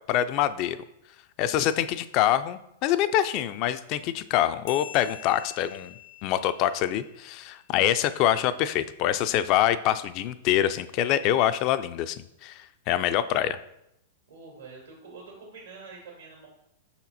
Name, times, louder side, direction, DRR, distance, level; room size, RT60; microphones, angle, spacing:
voice 1, 0.1-0.8 1.4-5.9 6.2-13.6, left 12 dB, 45° left, 13 dB, 0.4 m, -25 dB
sound 1, 4.7-7.7, left 14 dB, 65° left, 0.8 m, -45 dB
voice 2, 14.3-16.5, right 4 dB, 80° right, -4 dB, 2.2 m, -46 dB
5.7 x 4.2 x 4.1 m, 0.80 s
hypercardioid pair, 115°, 0 cm